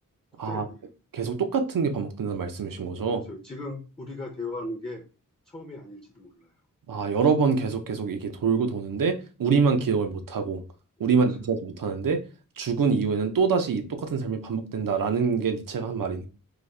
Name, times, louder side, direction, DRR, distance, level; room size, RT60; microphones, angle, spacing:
voice 1, 0.3-0.8 3.0-5.1 5.5-6.5 11.1-11.2, left 2 dB, 15° left, 0.6 m, -38 dB
voice 2, 1.1-3.2 6.9-10.6 11.0-12.2 12.6-16.3, right 5 dB, 80° right, 0.7 m, -25 dB
4.0 x 2.8 x 3.2 m
wide cardioid pair, 90°, 33 cm